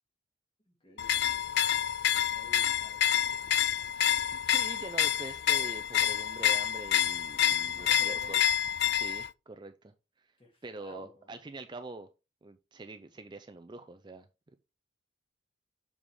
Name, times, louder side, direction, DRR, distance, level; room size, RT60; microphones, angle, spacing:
voice 1, 0.7-1.4 2.0-3.6 7.6-8.4 10.4-11.3, left 1 dB, 25° left, 2.1 m, -53 dB
sound 1, 1.0-9.3, left 10 dB, 55° left, 0.3 m, -28 dB
voice 2, 4.3-8.4 8.9-9.9 10.2-10.3 10.6-12.1 12.4-14.3, right 2 dB, 20° right, 0.4 m, -45 dB
7.4 x 4.7 x 3.5 m
head